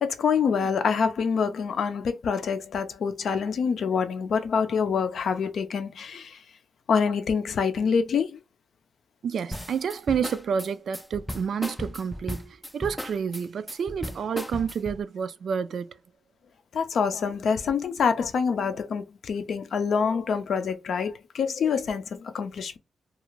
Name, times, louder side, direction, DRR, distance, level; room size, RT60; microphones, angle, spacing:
voice 1, 0.0-6.4 6.9-8.4 16.7-22.8, left 6 dB, 70° left, 0.5 m, -26 dB
voice 2, 9.2-16.0, right 7 dB, 70° right, 0.3 m, -29 dB
sound 1, 9.5-15.0, left 1 dB, 10° left, 0.4 m, -36 dB
2.4 x 2.3 x 3.0 m
cardioid pair, 90°, 0 cm